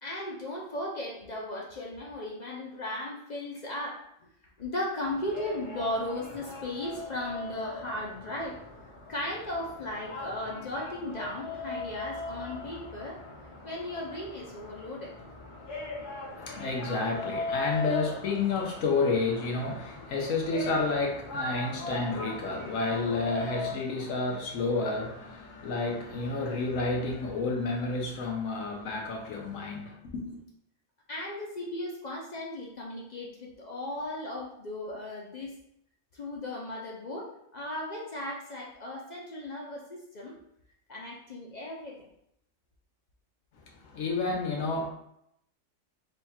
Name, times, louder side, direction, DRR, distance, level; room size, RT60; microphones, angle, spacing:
voice 1, 0.0-4.0 4.6-8.6 9.1-13.2 13.6-15.2 31.1-35.5 36.1-40.3 40.9-42.1, left 1 dB, 45° left, -2 dB, 0.6 m, -36 dB
sound 1, 5.0-23.7, left 2 dB, 65° left, 1.3 m, -40 dB
voice 2, 16.4-30.4 43.8-44.9, left 3 dB, 85° left, 0 dB, 1.2 m, -30 dB
3.4 x 2.3 x 4.1 m, 0.75 s
omnidirectional pair, 1.3 m